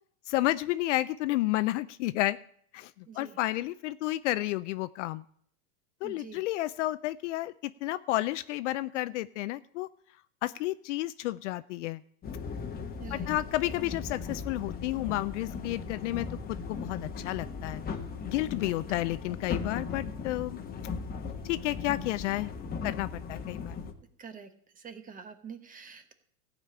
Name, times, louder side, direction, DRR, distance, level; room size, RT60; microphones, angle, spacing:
voice 1, 0.3-2.4 2.7-5.2 6.0-9.9 10.4-12.0 13.1-17.8 18.3-20.6 21.4-22.5 22.8-23.8, left 17 dB, 55° left, 15 dB, 0.5 m, -31 dB
voice 2, 3.1-3.4 6.0-6.4 13.0-13.3 18.6-18.8 24.2-24.5 24.8-26.1, right 6 dB, 20° right, 9 dB, 1.1 m, -46 dB
sound 1, 12.2-23.9, left 5 dB, 20° left, 1.2 m, -38 dB
14.5 x 5.2 x 8.5 m, 0.63 s
hypercardioid pair, 130°, 45 cm